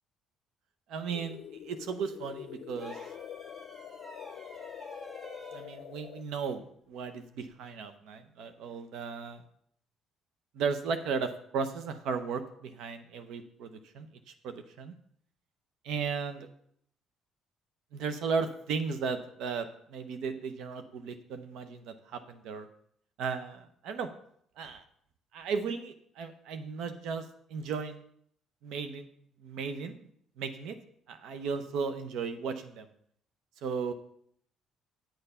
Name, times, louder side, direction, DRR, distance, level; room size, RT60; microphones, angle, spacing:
voice 1, 0.9-1.4 1.6-3.0 5.5-9.4 10.5-14.1 14.4-14.9 15.8-16.5 17.9-22.7 23.2-24.1 24.6-24.8 25.3-28.0 28.6-29.1 29.4-30.1 30.4-30.8 31.1-32.9 33.6-33.9, right 5 dB, 75° right, 9 dB, 0.8 m, -35 dB
sound 1, 1.1-6.2, left 10 dB, 65° left, 0.5 m, -45 dB
sound 2, 2.8-5.7 7.4-7.6, equal, 25° right, 1.9 m, -48 dB
9.4 x 6.8 x 5.6 m, 0.66 s
cardioid pair, 105°, 0 cm